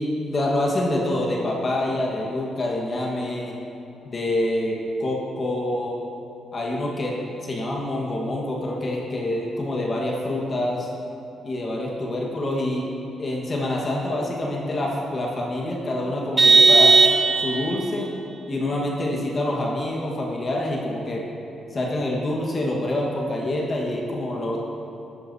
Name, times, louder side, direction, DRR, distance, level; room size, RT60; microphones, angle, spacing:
voice 1, 0.0-3.5 4.0-6.0 6.5-10.9 11.4-12.9 13.2-17.0 17.3-18.1 18.5-21.3 21.7-24.6, left 1 dB, 40° left, -2 dB, 1.4 m, -26 dB
Vehicle horn car horn honking, 16.4-17.8, right 3 dB, 25° right, 1.0 m, -15 dB
13.0 x 9.7 x 2.8 m, 2.8 s
cardioid pair, 90°, 0 cm